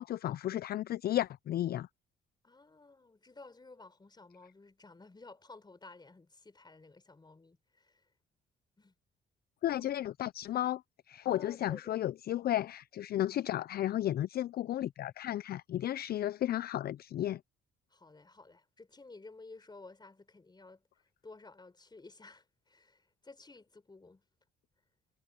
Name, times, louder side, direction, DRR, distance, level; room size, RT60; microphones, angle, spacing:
voice 1, 0.0-1.9 9.6-10.8 11.1-17.4, left 12 dB, 50° left, 0.4 m, -33 dB
voice 2, 2.4-8.0 8.8-8.9 9.8-9.9 11.3-12.0 17.9-20.8 21.2-24.2, left 3 dB, 20° left, 4.1 m, -54 dB
cardioid pair, 90°, 20 cm